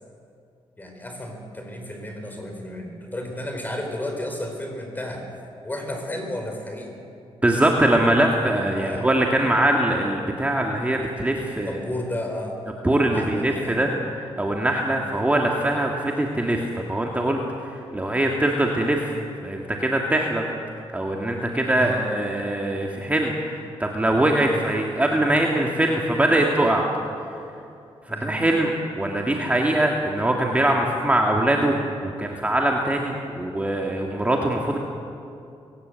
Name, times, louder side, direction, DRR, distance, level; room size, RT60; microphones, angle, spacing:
voice 1, 0.8-5.3 5.6-6.9 8.8-9.1 11.6-12.6 13.1-13.8 21.7-22.1 28.1-28.4, left 1 dB, 15° left, 3 dB, 4.5 m, -32 dB
voice 2, 7.4-11.7 12.8-13.9 14.2-17.4 17.9-19.1 19.4-20.4 20.9-23.3 23.8-26.8 28.1-31.8 32.0-34.8, right 1 dB, 15° right, 0 dB, 1.8 m, -22 dB
21.0 x 18.0 x 8.2 m, 2.5 s
cardioid pair, 105°, 10 cm